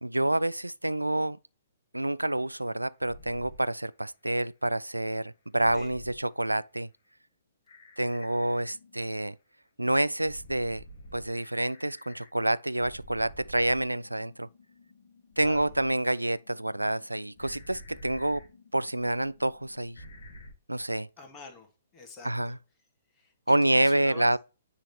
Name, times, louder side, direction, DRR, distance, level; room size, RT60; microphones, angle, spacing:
voice 1, 0.0-1.4 1.9-6.9 8.0-9.3 9.8-10.8 11.1-14.5 15.4-18.5 18.7-20.0 20.7-21.1 22.2-22.6 23.5-24.4, right 1 dB, 85° right, 0.3 m, -28 dB
sound 1, 3.0-3.6 5.6-6.2 7.7-9.2 10.2-12.3 12.7-20.5, equal, 55° left, 1.6 m, -50 dB
voice 2, 15.4-15.7 21.2-21.7 21.9-22.5 23.2-24.3, left 2 dB, 20° left, 2.1 m, -45 dB
9.7 x 3.7 x 2.8 m
figure-of-eight pair, 120°, 0 cm